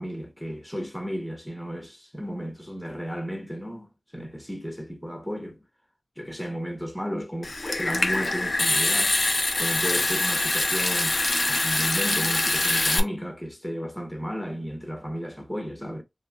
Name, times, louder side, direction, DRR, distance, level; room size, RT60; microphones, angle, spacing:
voice 1, 0.0-5.6 6.2-16.0, equal, 5° left, 0.8 m, -34 dB
Water tap faucet / Sink (filling or washing) / Trickle dribble, 7.4-13.0, left 2 dB, 55° left, 0.5 m, -24 dB
3.0 x 2.8 x 2.2 m
wide cardioid pair, 55°, 0 cm